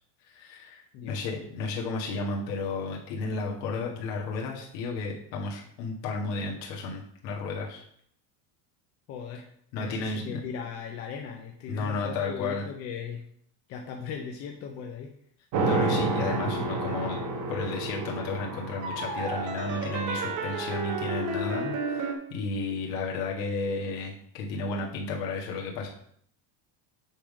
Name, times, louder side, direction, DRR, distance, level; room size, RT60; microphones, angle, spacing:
voice 1, 0.2-7.8 9.7-10.4 11.7-12.6 15.6-17.2 17.5-25.9, left 3 dB, 80° left, -2 dB, 1.8 m, -33 dB
voice 2, 9.1-13.2 13.7-15.2, left 6 dB, 35° left, 2 dB, 0.4 m, -38 dB
sound 1, 15.5-22.1, right 2 dB, 40° right, 1.0 m, -30 dB
7.7 x 3.6 x 4.9 m, 0.68 s
cardioid pair, 175°, 49 cm